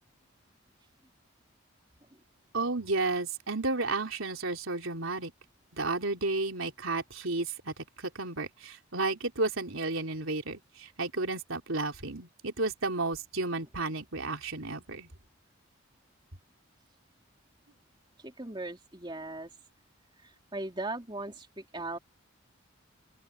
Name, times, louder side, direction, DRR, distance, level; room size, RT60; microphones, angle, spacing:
voice 1, 2.5-5.3 5.7-15.1, right 3 dB, 80° right, 3.6 m, -32 dB
voice 2, 18.2-19.5 20.2-22.0, right 2 dB, 20° right, 3.2 m, -39 dB
open air
head